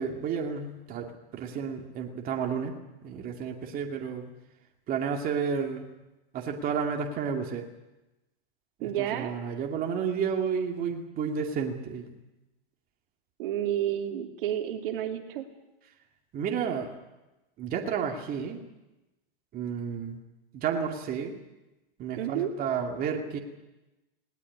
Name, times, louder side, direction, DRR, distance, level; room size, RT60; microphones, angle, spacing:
voice 1, 0.0-2.7 3.0-4.3 4.9-5.9 6.3-7.6 8.8-12.2 16.3-16.9 17.6-18.6 19.5-20.2 20.5-21.3 22.0-23.4, right 6 dB, 30° right, 2 dB, 2.4 m, -31 dB
voice 2, 8.8-9.3 13.4-15.4 22.2-22.5, right 11 dB, 60° right, 5 dB, 2.5 m, -30 dB
19.5 x 18.5 x 9.8 m, 1.0 s
supercardioid pair, 140°, 30 cm